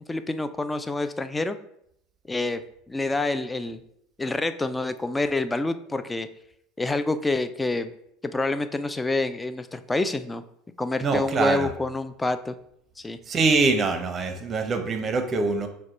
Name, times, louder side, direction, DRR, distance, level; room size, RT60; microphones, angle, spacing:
voice 1, 0.1-1.6 2.3-2.6 2.9-3.8 4.2-6.3 6.8-7.9 8.2-10.4 10.8-12.5 13.0-13.2, left 2 dB, 15° left, 11 dB, 0.3 m, -27 dB
voice 2, 11.0-11.7 13.3-15.7, right 3 dB, 35° right, 7 dB, 0.6 m, -24 dB
4.6 x 2.2 x 4.3 m, 0.74 s
hypercardioid pair, 75°, 0 cm